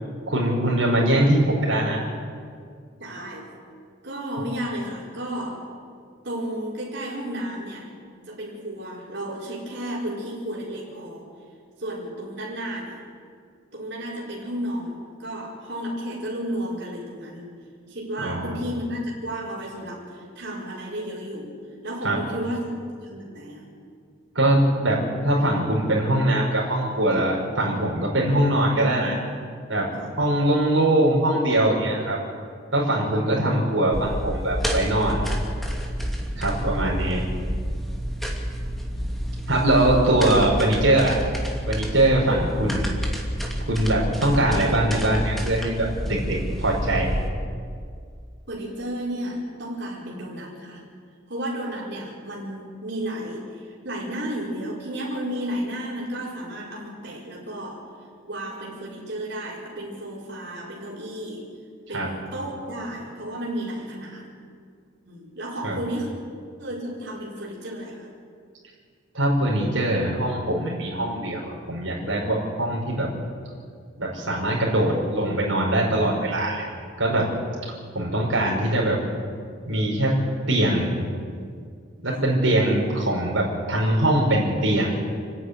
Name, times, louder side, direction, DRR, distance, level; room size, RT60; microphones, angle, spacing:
voice 1, 0.3-2.0 18.2-18.5 22.0-22.2 24.3-29.2 29.7-32.2 32.7-35.3 36.4-37.2 39.5-41.2 41.7-42.9 43.7-47.2 61.9-62.1 65.6-65.8 69.1-73.1 74.0-76.7 77.0-77.3 77.9-79.0 79.7-80.2 80.5-80.9 82.0-84.9, right 1 dB, 80° right, -3 dB, 5.5 m, -22 dB
voice 2, 3.0-3.5 4.0-5.7 6.2-7.9 8.3-11.2 11.8-13.0 13.7-17.5 17.9-21.6 21.8-23.7 30.0-30.2 33.1-33.2 48.5-50.8 51.3-57.9 58.3-61.5 61.9-64.3 65.1-66.1 66.6-68.1 82.1-82.2, equal, 60° right, -5 dB, 5.1 m, -33 dB
sound 1, 33.9-47.3, equal, ahead, 2.6 m, -29 dB
29.5 x 10.0 x 9.8 m, 2.2 s
head